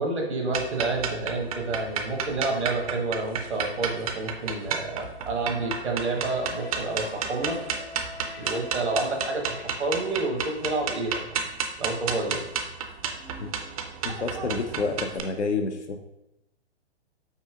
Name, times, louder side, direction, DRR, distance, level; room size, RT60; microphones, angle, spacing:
voice 1, 0.0-7.6 8.4-11.2 11.8-12.5, right 2 dB, 80° right, 1 dB, 1.3 m, -29 dB
sound 1, 0.5-15.2, right 7 dB, 35° right, 0.4 m, -31 dB
sound 2, 5.6-10.4, left 2 dB, 65° left, 1.4 m, -44 dB
voice 2, 14.0-16.0, left 4 dB, 90° left, 5 dB, 0.6 m, -29 dB
5.5 x 3.9 x 2.4 m, 0.88 s
figure-of-eight pair, 120°, 33 cm